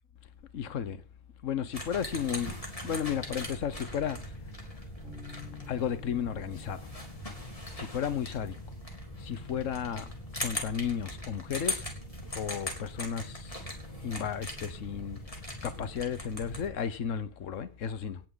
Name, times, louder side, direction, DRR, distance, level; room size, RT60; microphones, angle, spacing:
voice 1, 0.5-1.0 1.4-2.5 2.8-4.2 5.6-6.9 7.7-8.5 9.2-10.1 10.4-11.8 12.3-13.6 14.0-15.2 15.6-18.2, left 8 dB, 75° left, 1.4 m, -33 dB
sound 1, 1.7-16.7, left 1 dB, 25° left, 3.7 m, -40 dB
Bass guitar, 5.0-8.5, left 6 dB, 70° right, 7.9 m, -51 dB
18.5 x 11.0 x 4.0 m
omnidirectional pair, 1.3 m